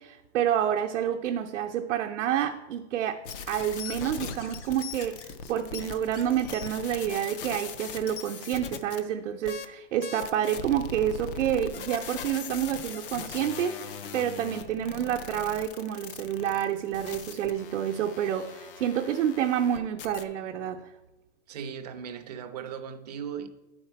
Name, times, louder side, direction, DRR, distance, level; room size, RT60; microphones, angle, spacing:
voice 1, 0.0-20.8, right 10 dB, 90° right, 0.7 m, -29 dB
Squeak / Writing, 3.2-7.0, left 4 dB, 75° left, 0.9 m, -46 dB
sound 1, 3.3-9.0 9.4-9.7 10.0-20.2, left 7 dB, 50° left, 0.4 m, -40 dB
voice 2, 21.5-23.5, right 7 dB, 35° right, 0.4 m, -37 dB
10.5 x 4.4 x 4.4 m
supercardioid pair, 175°, 37 cm